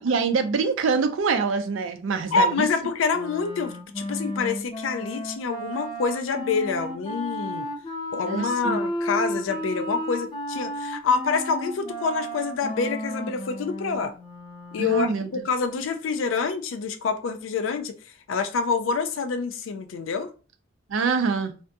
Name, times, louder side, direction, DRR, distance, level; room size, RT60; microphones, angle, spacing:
voice 1, 0.0-2.6 8.3-8.8 14.8-15.3 20.9-21.5, right 5 dB, 85° right, 0.4 m, -25 dB
voice 2, 2.3-7.7 8.1-14.1 14.7-17.9 18.3-20.3, left 5 dB, 85° left, 0.4 m, -26 dB
Wind instrument woodwind instrument, 3.1-15.2, equal, 25° left, 0.4 m, -33 dB
2.6 x 2.5 x 2.2 m
head